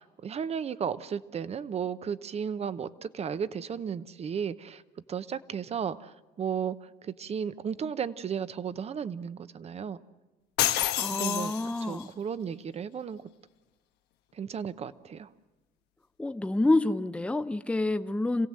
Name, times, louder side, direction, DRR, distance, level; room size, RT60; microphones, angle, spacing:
voice 1, 0.0-4.8 5.1-10.0 11.0-11.5 11.8-13.2 14.3-15.3, right 7 dB, 40° right, 15 dB, 0.8 m, -34 dB
sound 1, 10.6-12.0, left 13 dB, 90° left, 1.1 m, -28 dB
voice 2, 11.0-12.1 16.2-18.5, left 2 dB, 5° left, 11 dB, 0.6 m, -28 dB
27.0 x 16.5 x 7.6 m, 1.1 s
cardioid pair, 110°, 17 cm